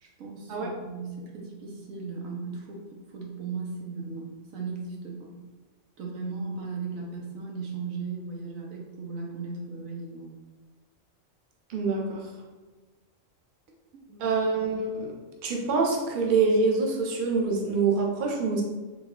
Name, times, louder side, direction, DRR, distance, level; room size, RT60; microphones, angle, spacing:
voice 1, 0.0-5.3 6.0-10.3 13.9-14.3, right 4 dB, 85° right, -1 dB, 1.2 m, -37 dB
voice 2, 11.7-12.3 14.2-15.1 15.4-18.6, right 4 dB, 50° right, -1 dB, 0.6 m, -25 dB
4.0 x 2.2 x 3.6 m, 1.2 s
omnidirectional pair, 1.4 m